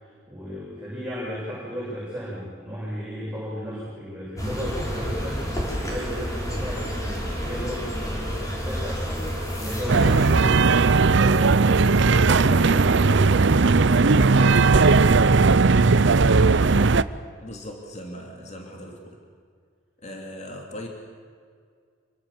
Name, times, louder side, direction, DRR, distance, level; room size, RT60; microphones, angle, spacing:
voice 1, 0.0-10.5 11.2-14.4, equal, 5° right, -9 dB, 7.7 m, -35 dB
sound 1, 4.4-10.3, equal, 15° left, 4.6 m, -29 dB
sound 2, 9.9-17.0, right 4 dB, 60° right, 0.7 m, -17 dB
voice 2, 17.4-19.2 20.0-20.9, equal, 35° left, 1 dB, 3.1 m, -39 dB
27.0 x 24.0 x 7.3 m, 2.1 s
head